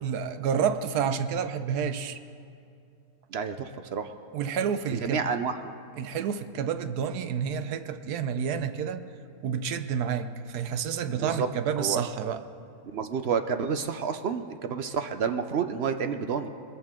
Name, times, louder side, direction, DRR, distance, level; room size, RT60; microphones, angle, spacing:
voice 1, 0.0-2.2 4.3-5.3 6.0-9.1 9.4-12.4, right 7 dB, 85° right, 11 dB, 1.2 m, -29 dB
voice 2, 3.3-4.1 4.9-5.5 11.1-11.5 11.8-12.0 12.9-16.5, right 6 dB, 60° right, 8 dB, 0.7 m, -29 dB
21.0 x 14.0 x 3.7 m, 2.4 s
omnidirectional pair, 1.6 m